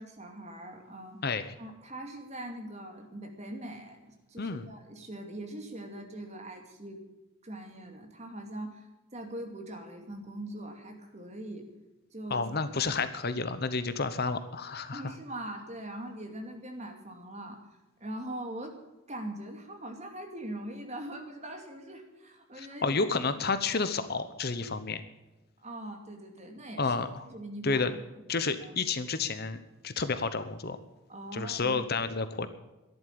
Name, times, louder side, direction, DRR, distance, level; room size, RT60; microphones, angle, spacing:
voice 1, 0.0-1.2 1.6-7.0 7.4-11.7 12.1-12.5 12.8-13.0 14.9-17.6 18.0-18.8 19.1-23.0 25.6-27.0 27.3-28.0 28.6-28.8 31.1-31.8, right 1 dB, 30° right, 3 dB, 2.5 m, -42 dB
voice 2, 4.4-4.7 12.3-15.1 22.5-25.0 26.8-27.3 27.6-27.9 28.3-30.8 31.3-32.5, left 4 dB, 45° left, 11 dB, 0.9 m, -30 dB
13.0 x 11.0 x 8.5 m, 1.0 s
head